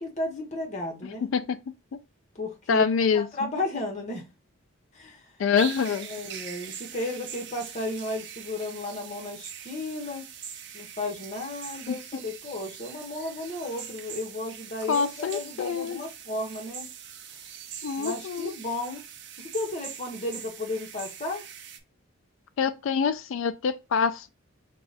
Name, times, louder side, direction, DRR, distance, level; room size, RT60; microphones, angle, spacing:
voice 1, 0.0-1.3 2.3-2.9 3.1-4.2 4.9-5.3 6.0-10.3 10.7-16.9 17.3-17.4 17.9-19.1 19.4-21.4, left 2 dB, 35° left, 1.0 m, -34 dB
voice 2, 2.7-3.3 5.4-6.1 11.9-12.0 14.9-16.0 17.8-18.5 22.6-24.3, left 6 dB, 65° left, 0.3 m, -25 dB
sound 1, 5.6-21.8, right 8 dB, 55° right, 0.6 m, -42 dB
4.8 x 2.3 x 4.0 m
head